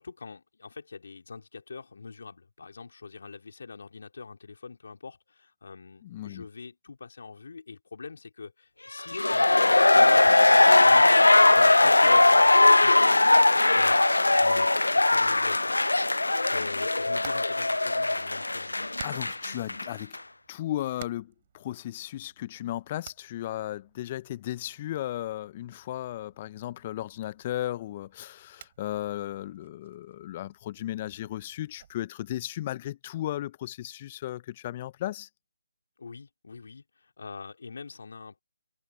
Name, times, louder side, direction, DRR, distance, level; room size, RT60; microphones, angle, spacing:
voice 1, 0.0-12.2 12.7-13.2 13.7-14.1 14.4-15.8 16.5-19.1 36.0-38.4, left 4 dB, 60° left, 4.0 m, -44 dB
voice 2, 6.0-6.4 16.2-16.5 19.0-20.2 20.5-35.3, left 13 dB, 30° left, 0.8 m, -35 dB
sound 1, 9.0-19.9 20.1-20.2, left 2 dB, 80° left, 0.4 m, -20 dB
Hammer, 16.7-32.0, right 9 dB, 35° right, 5.1 m, -53 dB
figure-of-eight pair, 150°, 0 cm